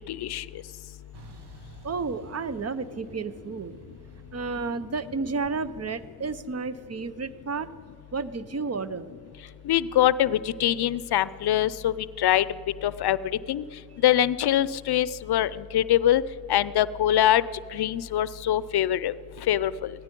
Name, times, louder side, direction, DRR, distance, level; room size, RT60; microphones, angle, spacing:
voice 1, 0.1-0.4 9.7-12.5 12.8-13.2 13.5-13.6 14.0-16.2 16.5-17.4 17.7-19.1 19.5-19.9, left 12 dB, 75° left, 18 dB, 0.5 m, -23 dB
Truck, 1.1-6.2, right 1 dB, 85° right, 1.6 m, -51 dB
voice 2, 1.8-3.7 4.3-7.7 8.1-9.1, right 4 dB, 40° right, 15 dB, 0.7 m, -31 dB
16.5 x 13.5 x 5.3 m, 2.5 s
cardioid pair, 55°, 39 cm